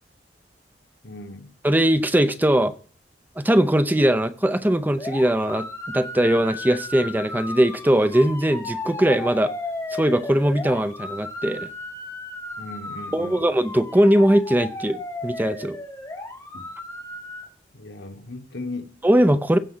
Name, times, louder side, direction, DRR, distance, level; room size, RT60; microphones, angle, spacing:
voice 1, 1.0-1.5 12.6-13.4 16.5-16.6 17.7-19.0, left 2 dB, 80° left, 1.4 m, -37 dB
voice 2, 1.6-2.7 3.4-9.5 9.9-11.7 13.1-15.8 19.0-19.6, right 1 dB, 10° right, 0.6 m, -20 dB
sound 1, 5.0-17.4, left 2 dB, 15° left, 2.1 m, -35 dB
15.5 x 5.8 x 3.9 m
head